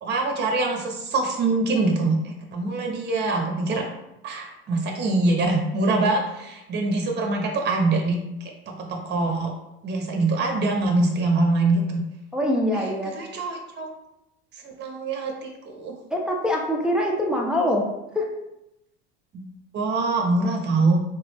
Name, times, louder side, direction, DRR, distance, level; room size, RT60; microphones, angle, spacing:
voice 1, 0.0-3.8 4.2-8.5 8.8-9.5 9.8-12.0 13.2-13.9 14.6-16.0 19.3-19.4 19.7-21.0, right 3 dB, 35° right, 2 dB, 0.8 m, -24 dB
voice 2, 12.3-13.1 16.1-17.9 18.1-18.3, left 1 dB, 5° right, -1 dB, 0.5 m, -23 dB
3.5 x 2.0 x 3.2 m, 0.88 s
hypercardioid pair, 80°, 32 cm